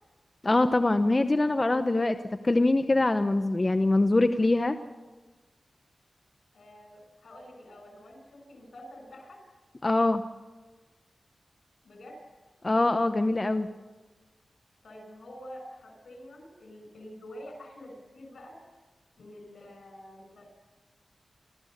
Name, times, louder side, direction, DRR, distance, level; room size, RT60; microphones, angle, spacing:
voice 1, 0.4-2.2 2.4-4.8 9.8-10.2 12.6-13.7, left 2 dB, 35° left, 9 dB, 0.9 m, -23 dB
voice 2, 6.5-9.4 11.8-12.2 14.8-18.5 19.2-20.5, equal, 85° left, 4 dB, 6.3 m, -47 dB
29.5 x 13.5 x 6.6 m, 1.3 s
cardioid pair, 60°, 0 cm